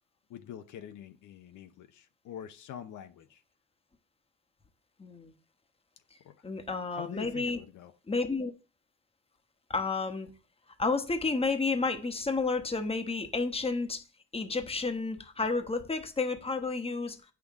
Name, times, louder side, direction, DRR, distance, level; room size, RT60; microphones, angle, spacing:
voice 1, 0.3-3.4 6.2-6.5 6.9-7.9, left 10 dB, 75° left, 0.8 m, -45 dB
voice 2, 5.0-5.3 6.4-7.6 8.1-8.5 9.7-10.3 10.8-14.0 14.3-17.2, left 3 dB, 20° left, 1.1 m, -31 dB
8.4 x 5.9 x 3.6 m
cardioid pair, 90°, 30 cm